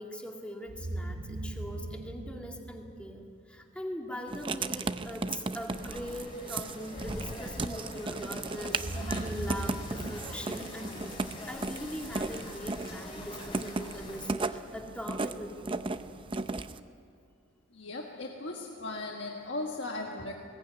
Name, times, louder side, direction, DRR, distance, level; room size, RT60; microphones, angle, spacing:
voice 1, 0.0-15.9, equal, 5° left, 2.2 m, -41 dB
sound 1, 0.7-3.6 8.6-11.8, right 1 dB, 60° right, 1.5 m, -40 dB
Writing, 4.3-16.8, right 3 dB, 25° right, 0.6 m, -36 dB
sound 2, 5.7-14.3, left 1 dB, 25° left, 4.1 m, -44 dB
voice 2, 17.7-20.3, left 2 dB, 65° left, 1.6 m, -37 dB
21.5 x 18.0 x 9.6 m
head